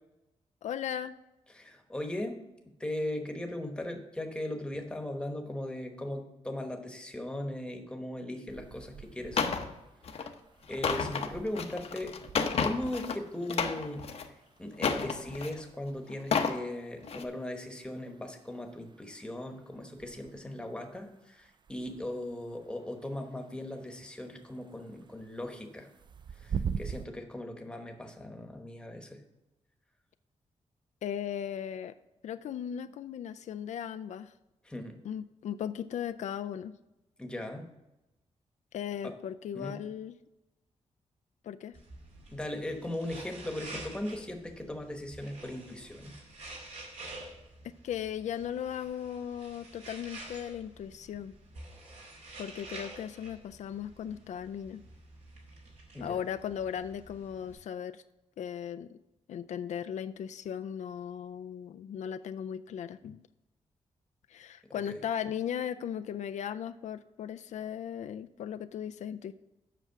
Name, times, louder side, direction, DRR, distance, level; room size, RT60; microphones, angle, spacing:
voice 1, 0.6-1.2 31.0-31.9 32.2-34.3 35.0-36.8 38.7-40.1 41.4-41.8 47.6-51.3 52.4-54.8 56.0-58.0 58.4-59.0 59.3-63.2 64.3-69.3, left 9 dB, 80° left, 10 dB, 0.4 m, -37 dB
voice 2, 1.5-2.4 2.8-9.5 10.2-10.3 10.7-12.1 12.5-14.3 14.6-25.9 26.3-29.2 34.6-35.0 37.2-37.7 39.0-39.1 39.5-39.8 42.3-46.2 55.9-56.2 64.7-65.0, left 1 dB, 10° left, 4 dB, 1.0 m, -38 dB
sound 1, 8.5-27.1, right 7 dB, 40° right, 0.4 m, -45 dB
sound 2, 9.4-9.7 10.0-10.3 10.7-13.2 13.5-14.3 14.8-15.6 16.1-16.6 17.0-17.2, left 5 dB, 60° left, 0.7 m, -31 dB
sound 3, 41.7-57.5, right 2 dB, 75° right, 2.5 m, -49 dB
8.0 x 6.0 x 5.7 m, 0.95 s
wide cardioid pair, 150°, 12 cm